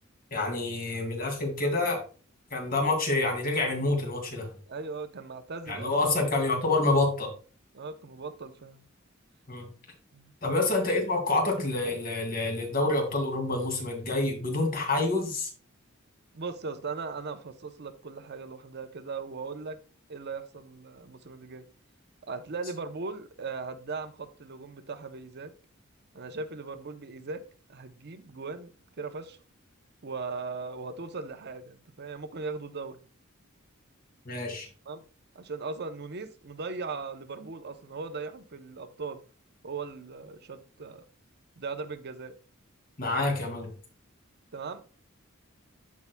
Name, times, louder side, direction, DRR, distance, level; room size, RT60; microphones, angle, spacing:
voice 1, 0.3-2.0 2.5-4.5 5.7-7.3 9.5-9.7 10.4-15.5 34.3-34.7 43.0-43.7, left 2 dB, 45° left, 2 dB, 2.4 m, -27 dB
voice 2, 4.7-5.9 7.7-8.8 10.1-10.6 16.3-19.8 20.1-21.7 22.3-25.5 26.1-27.4 27.7-29.4 30.0-33.0 34.9-35.0 35.3-39.2 39.6-41.0 41.6-42.3 44.5-44.8, right 4 dB, 55° right, 9 dB, 0.8 m, -38 dB
14.0 x 4.7 x 2.3 m, 0.36 s
head